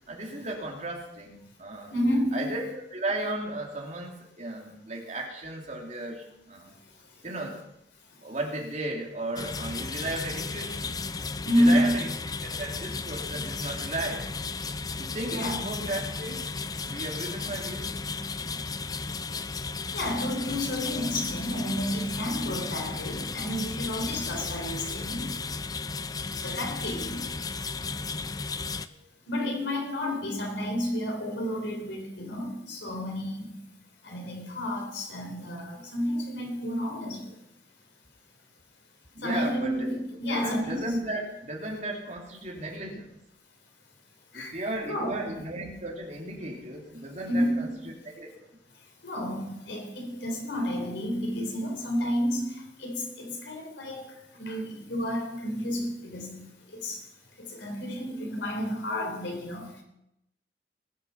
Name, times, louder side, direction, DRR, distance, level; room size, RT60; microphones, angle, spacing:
voice 1, 0.1-1.9 2.3-6.7 7.2-7.6 8.2-11.0 11.5-12.1 12.4-14.4 15.0-16.4 16.9-18.0 28.9-29.1 39.1-39.9 40.3-43.1 44.3-47.7 48.1-48.5, right 2 dB, 40° right, 2.9 m, -35 dB
voice 2, 1.9-2.5 6.7-6.8 8.2-8.3 11.5-12.0 15.3-15.6 19.9-25.5 26.4-27.3 29.3-33.7 34.0-37.4 39.2-40.8 44.3-45.4 47.3-47.9 49.0-57.1 57.4-59.8, equal, 90° left, 3.6 m, -30 dB
sound 1, 9.4-28.9, left 4 dB, 20° left, 0.5 m, -34 dB
20.5 x 7.5 x 5.8 m
head